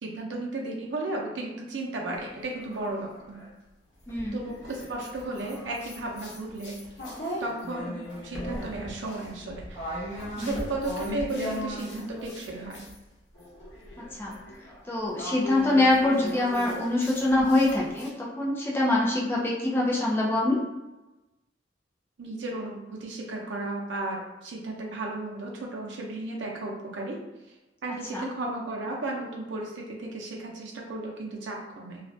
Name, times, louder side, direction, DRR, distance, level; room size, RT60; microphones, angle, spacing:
voice 1, 0.0-3.4 4.3-6.7 7.4-8.0 8.2-12.9 22.2-27.2 27.8-32.0, right 2 dB, 80° right, -1 dB, 0.6 m, -34 dB
sound 1, 2.1-3.5 4.1-13.0 13.3-18.1, equal, 80° left, 0.8 m, -38 dB
voice 2, 4.1-4.4 10.4-10.5 14.2-14.4 14.9-20.6 28.1-28.3, left 2 dB, 10° left, -4 dB, 0.3 m, -24 dB
2.4 x 2.1 x 2.6 m, 1.0 s
head